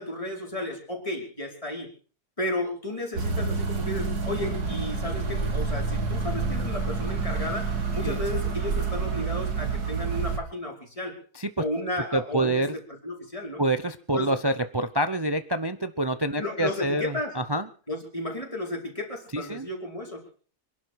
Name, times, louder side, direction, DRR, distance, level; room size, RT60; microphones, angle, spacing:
voice 1, 0.0-1.9 2.4-11.2 11.6-12.7 13.0-13.6 14.1-14.3 16.4-17.3 17.9-20.3, left 1 dB, 20° left, 0 dB, 5.0 m, -33 dB
sound 1, 3.1-10.4, right 4 dB, 70° right, 2.6 m, -28 dB
voice 2, 12.1-12.7 13.6-17.7 19.3-19.7, right 1 dB, 25° right, 10 dB, 0.6 m, -27 dB
26.0 x 11.5 x 4.8 m, 0.42 s
omnidirectional pair, 1.7 m